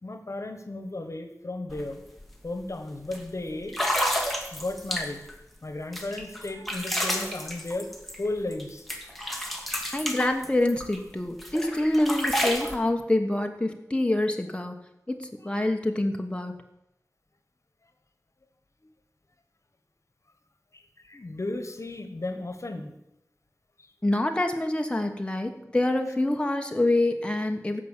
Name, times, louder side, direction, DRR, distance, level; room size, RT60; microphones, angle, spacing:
voice 1, 0.0-2.0 2.4-3.8 4.1-4.2 4.5-5.2 5.6-7.9 8.2-8.9 9.9-10.0 20.7-22.9 23.8-23.9, left 2 dB, 60° left, 7 dB, 1.4 m, -34 dB
sound 1, 1.7-1.8 2.2-2.5 3.1-3.2 3.7-5.3 5.9-8.6 8.9-11.0 11.4-12.8, equal, ahead, 2.0 m, -30 dB
voice 2, 9.9-14.8 15.1-16.5 24.0-27.8, left 1 dB, 20° left, 4 dB, 1.2 m, -26 dB
15.0 x 5.8 x 7.3 m, 0.87 s
wide cardioid pair, 55°, 6 cm